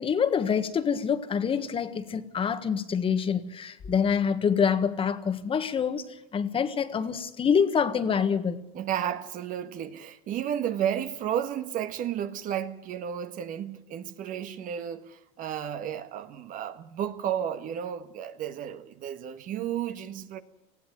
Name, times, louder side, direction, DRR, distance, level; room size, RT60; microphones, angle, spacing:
voice 1, 0.0-6.0 6.3-8.6, left 7 dB, 30° left, 1.5 m, -26 dB
voice 2, 8.7-20.4, right 9 dB, 50° right, 1.6 m, -32 dB
19.5 x 15.0 x 9.3 m
supercardioid pair, 100°, 17 cm